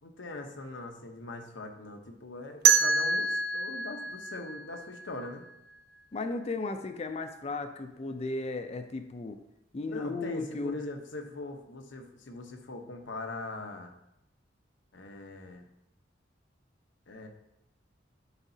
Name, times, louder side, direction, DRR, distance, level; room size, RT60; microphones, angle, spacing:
voice 1, 0.0-5.5 9.8-13.9 14.9-15.6 17.1-17.3, left 2 dB, 85° left, 4 dB, 0.9 m, -41 dB
sound 1, 2.7-5.5, right 5 dB, 55° right, 0.5 m, -27 dB
voice 2, 6.1-9.4 9.7-10.8, left 3 dB, 35° left, 7 dB, 0.4 m, -35 dB
11.0 x 4.0 x 2.7 m, 0.87 s
head